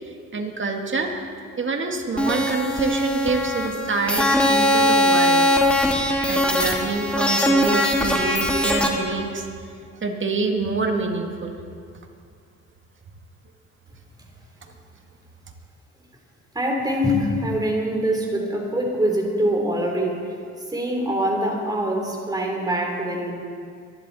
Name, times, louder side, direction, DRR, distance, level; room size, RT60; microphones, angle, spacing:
voice 1, 0.3-1.1 1.6-5.5 5.9-9.5 10.0-11.5, right 3 dB, 40° right, 3 dB, 2.0 m, -26 dB
sound 1, 2.2-8.9, left 1 dB, 5° left, 2.2 m, -20 dB
voice 2, 16.5-20.2 20.7-23.3, equal, 15° right, 0 dB, 3.6 m, -24 dB
24.5 x 11.0 x 4.2 m, 2.3 s
cardioid pair, 90°, 30 cm